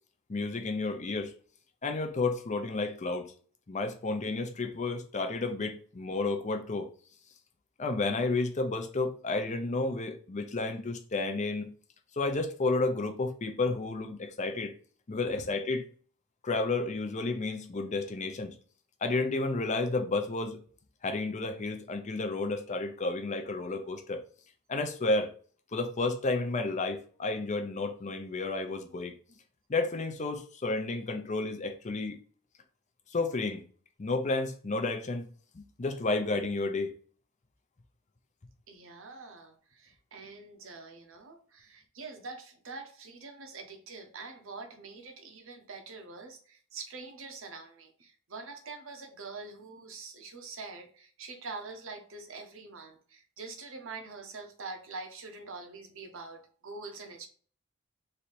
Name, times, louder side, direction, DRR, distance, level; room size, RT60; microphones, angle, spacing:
voice 1, 0.3-1.3 1.8-3.3 3.7-6.9 7.8-11.7 12.2-14.7 15.1-15.8 16.4-18.5 19.0-20.6 21.0-24.2 24.7-25.3 25.7-29.1 29.7-32.2 33.1-33.6 34.0-35.3 35.5-36.9, left 3 dB, 35° left, 0.5 m, -31 dB
voice 2, 38.7-57.3, right 3 dB, 65° right, 0.8 m, -45 dB
3.2 x 2.7 x 4.2 m
head